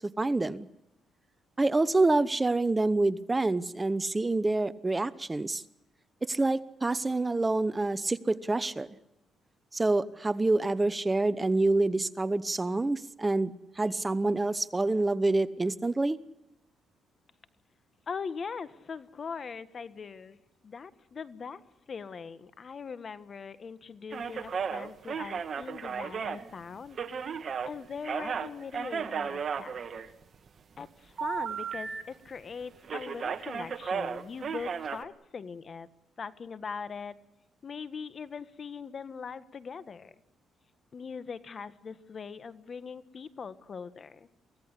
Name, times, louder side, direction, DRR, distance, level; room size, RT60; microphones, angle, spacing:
voice 1, 0.2-0.7 1.6-5.6 6.2-8.9 9.7-16.2, right 2 dB, 20° right, 16 dB, 0.9 m, -27 dB
voice 2, 18.1-20.4 20.6-21.6 21.9-27.0 27.6-29.8 30.8-35.9 36.2-37.1 37.6-40.1 40.9-44.3, left 5 dB, 45° left, 14 dB, 1.5 m, -41 dB
sound 1, 24.1-27.7 28.0-30.5 31.2-32.0 32.3-32.5 32.8-35.0, right 6 dB, 50° right, 1.8 m, -34 dB
24.0 x 16.5 x 10.0 m, 0.88 s
cardioid pair, 90°, 0 cm